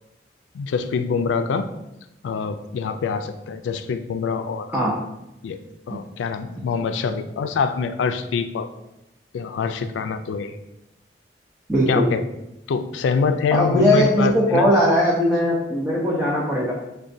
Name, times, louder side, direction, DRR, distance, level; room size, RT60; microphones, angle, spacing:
voice 1, 0.5-1.7 2.2-4.7 5.4-5.6 5.9-8.7 9.3-10.6 11.9-12.2 12.7-14.7, left 5 dB, 90° left, 10 dB, 0.3 m, -25 dB
voice 2, 11.7-12.1 13.5-16.7, equal, 10° right, -6 dB, 0.5 m, -19 dB
5.9 x 2.2 x 2.6 m, 0.90 s
head